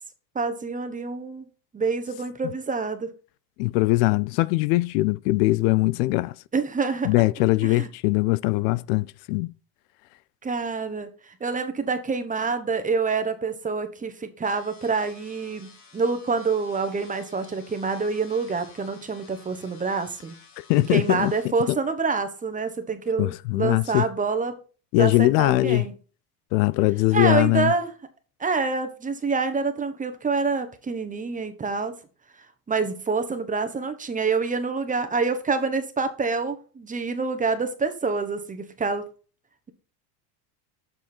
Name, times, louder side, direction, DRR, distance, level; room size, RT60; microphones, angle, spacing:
voice 1, 0.3-1.5 1.7-3.1 6.5-7.1 7.6-7.9 10.4-20.4 20.9-24.6 25.0-25.9 27.1-27.9 28.4-32.0 32.7-39.0, right 4 dB, 15° right, 1.1 m, -27 dB
voice 2, 3.6-6.3 7.0-9.5 20.7-21.3 21.7-21.8 23.2-24.1 24.9-25.8 26.5-27.7, left 20 dB, 80° left, 0.6 m, -21 dB
sound 1, 14.4-21.5, left 5 dB, 60° left, 3.0 m, -51 dB
7.6 x 6.1 x 4.4 m
supercardioid pair, 125°, 48 cm